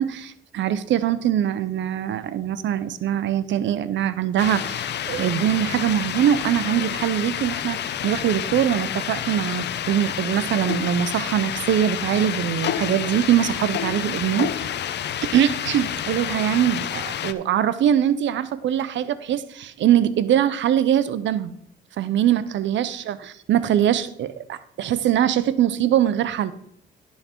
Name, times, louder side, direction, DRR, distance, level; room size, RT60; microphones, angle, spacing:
voice 1, 0.0-15.0 15.3-21.5 22.0-26.5, right 10 dB, 70° right, 15 dB, 0.6 m, -22 dB
sound 1, 4.4-17.3, left 10 dB, 60° left, 0.7 m, -29 dB
12.0 x 5.7 x 4.4 m, 0.71 s
cardioid pair, 90°, 20 cm